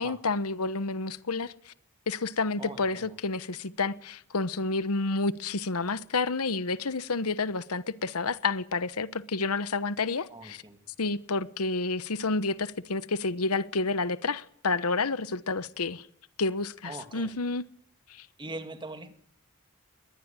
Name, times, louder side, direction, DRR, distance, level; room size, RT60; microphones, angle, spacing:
voice 1, 0.0-1.7 2.1-10.6 11.0-16.1 16.4-17.6 18.1-18.3, left 3 dB, 85° left, 1.1 m, -30 dB
voice 2, 2.6-3.2 10.3-10.8 16.8-17.3 18.4-19.1, right 2 dB, 20° right, 2.4 m, -42 dB
22.0 x 20.0 x 9.0 m
head